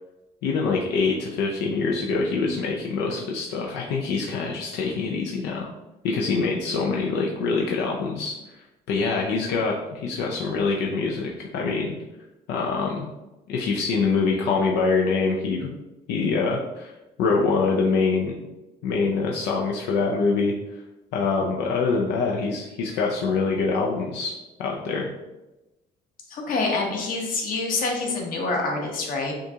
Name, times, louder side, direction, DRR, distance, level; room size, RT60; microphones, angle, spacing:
voice 1, 0.4-5.7 6.0-8.3 8.9-12.0 12.5-13.1 13.5-15.7 16.1-16.9 17.2-18.3 18.8-20.5 21.1-24.3 24.6-25.1, left 4 dB, 85° left, -1 dB, 0.5 m, -24 dB
voice 2, 26.3-29.3, left 3 dB, 55° left, 0 dB, 1.1 m, -26 dB
6.3 x 2.4 x 2.8 m, 1.0 s
cardioid pair, 110°, 17 cm